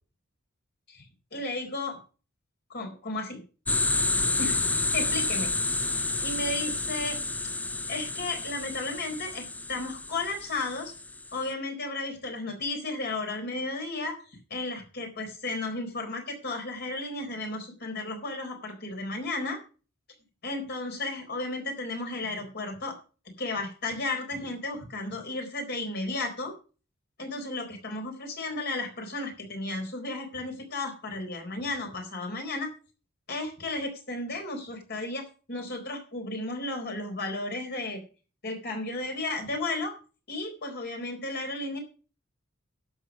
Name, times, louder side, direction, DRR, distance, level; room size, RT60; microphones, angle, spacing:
voice 1, 1.3-2.0 2.7-3.4 4.4-4.6 4.9-5.5 6.2-7.2 7.9-10.9 11.3-14.2 14.5-19.6 20.4-23.0 23.4-26.5 27.2-32.7 33.3-38.0 38.4-39.9 40.3-41.8, left 2 dB, 50° left, 3 dB, 4.1 m, -33 dB
sound 1, 3.7-11.4, left 3 dB, 10° left, 0.5 m, -30 dB
11.5 x 7.4 x 6.1 m, 0.35 s
head